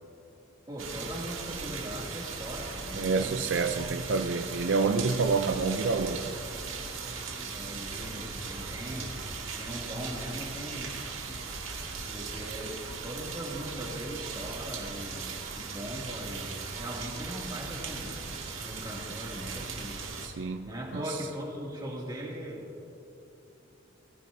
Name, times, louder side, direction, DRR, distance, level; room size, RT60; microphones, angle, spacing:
voice 1, 0.7-3.6 7.5-9.2 9.6-11.0 12.1-18.3 18.6-20.1 20.7-22.6, equal, 20° right, -3 dB, 2.4 m, -39 dB
sound 1, 0.8-20.3, right 4 dB, 80° right, 2.2 m, -38 dB
voice 2, 3.0-6.4 20.2-21.2, right 4 dB, 65° right, 6 dB, 0.5 m, -28 dB
22.0 x 15.0 x 2.7 m, 3.0 s
head